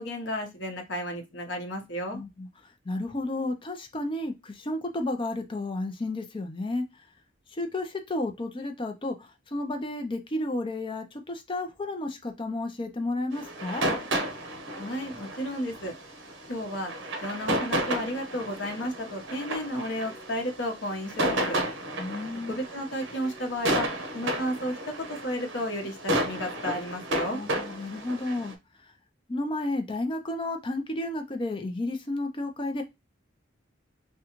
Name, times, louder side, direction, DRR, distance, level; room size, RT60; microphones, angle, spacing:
voice 1, 0.0-2.2 14.8-15.9 16.5-16.9 17.2-21.6 22.5-23.9 24.1-27.4, equal, 65° left, 0.9 m, -33 dB
voice 2, 2.1-2.5 2.9-6.8 7.5-13.8 22.0-22.5 27.3-28.5 29.3-32.8, left 2 dB, 25° left, 0.5 m, -32 dB
sound 1, 13.3-28.5, right 1 dB, 75° right, 0.9 m, -32 dB
3.6 x 2.3 x 2.9 m
head